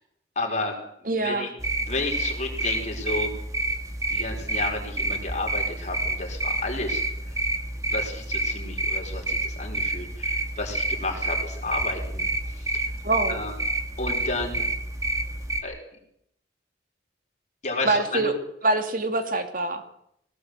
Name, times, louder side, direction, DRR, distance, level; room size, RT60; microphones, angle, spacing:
voice 1, 0.3-0.8 1.2-1.5 1.8-3.3 4.1-7.4 7.9-12.3 12.6-12.9 13.3-13.5 14.0-14.6 15.6-15.7 17.6-18.3, left 2 dB, 40° left, 1 dB, 5.1 m, -32 dB
voice 2, 1.0-1.5 13.0-13.4 17.8-18.3 18.6-19.9, right 2 dB, 50° right, 7 dB, 2.5 m, -25 dB
sound 1, 1.6-15.6, right 2 dB, 20° right, 2.2 m, -29 dB
20.5 x 18.0 x 8.1 m, 0.74 s
head